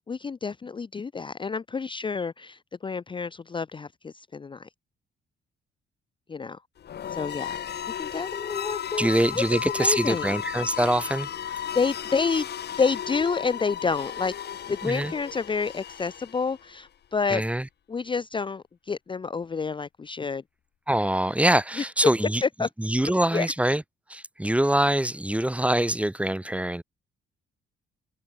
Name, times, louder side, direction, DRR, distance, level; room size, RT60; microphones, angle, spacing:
voice 1, 0.0-4.7 6.3-6.6 7.1-7.6 8.0-10.3 11.7-12.5 12.8-14.3 14.7-17.4 17.9-20.4 22.4-22.7 23.3-23.5, left 5 dB, 25° left, 0.6 m, -29 dB
sound 1, 6.8-16.7, left 9 dB, 55° left, 1.7 m, -34 dB
voice 2, 9.0-11.6 14.8-15.1 17.3-17.7 20.9-22.4 22.8-23.8 24.1-26.8, right 1 dB, 5° right, 0.9 m, -24 dB
cardioid pair, 90°, 20 cm